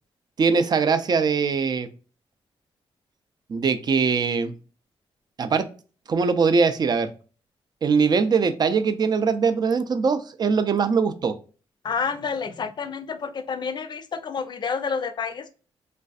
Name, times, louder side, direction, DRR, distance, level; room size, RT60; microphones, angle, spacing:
voice 1, 0.4-1.9 3.5-4.5 5.4-5.7 6.1-7.1 7.8-11.4, right 5 dB, 45° right, 9 dB, 0.4 m, -21 dB
voice 2, 11.8-15.5, left 5 dB, 45° left, 10 dB, 0.4 m, -29 dB
3.1 x 2.5 x 2.3 m, 0.37 s
cardioid pair, 95°, 10 cm